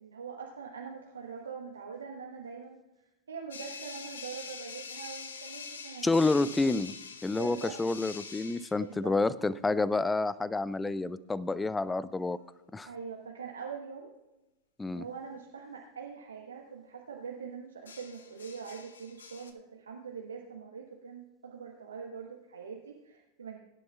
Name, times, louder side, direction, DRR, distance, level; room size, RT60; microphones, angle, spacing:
voice 1, 0.0-2.8 3.3-6.5 7.4-7.7 8.8-9.2 12.8-14.1 14.9-23.6, right 6 dB, 70° right, 1 dB, 1.1 m, -43 dB
sound 1, 3.5-8.8 12.3-12.6 17.9-19.5, left 5 dB, 70° left, 0.8 m, -45 dB
voice 2, 6.0-6.9 7.2-12.4 12.7-12.9 14.8-15.0, left 3 dB, 10° left, 19 dB, 0.4 m, -29 dB
22.5 x 10.5 x 2.3 m, 1.0 s
figure-of-eight pair, 90°, 0 cm